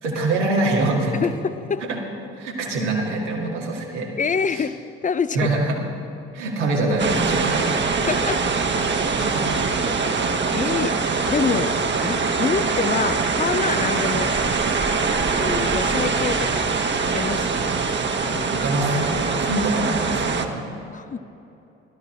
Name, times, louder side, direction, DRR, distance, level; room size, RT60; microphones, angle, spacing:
voice 1, 0.0-1.2 1.9-2.0 2.3-4.1 4.5-4.7 5.3-5.8 6.3-7.7 9.1-9.9 18.6-20.7, right 2 dB, 85° right, -2 dB, 2.1 m, -24 dB
voice 2, 1.2-1.9 4.2-5.5 8.1-8.5 10.5-11.0 11.2-11.7 12.0-14.4 15.3-16.8 17.1-17.8 18.3-18.5 19.3-19.5 20.9-21.2, left 5 dB, 20° left, 14 dB, 0.5 m, -26 dB
sound 1, 7.0-20.5, right 4 dB, 30° right, 1.2 m, -23 dB
16.5 x 12.5 x 4.3 m, 2.8 s
hypercardioid pair, 50°, 35 cm